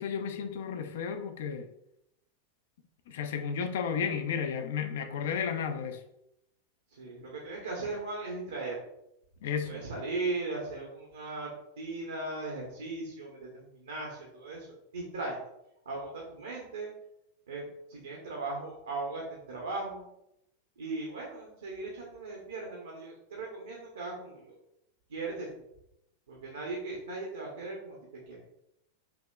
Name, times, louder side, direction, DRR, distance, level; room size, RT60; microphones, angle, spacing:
voice 1, 0.0-1.7 3.1-6.0 9.4-9.8, left 7 dB, 55° left, 7 dB, 0.5 m, -33 dB
voice 2, 6.9-8.8 9.6-11.5 11.8-14.7 14.9-15.4 15.8-16.9 17.5-20.0 20.8-24.6 25.1-25.6 26.3-28.0 28.3-28.4, right 3 dB, 70° right, -2 dB, 0.9 m, -38 dB
5.9 x 2.9 x 2.3 m, 0.82 s
figure-of-eight pair, 90°, 0 cm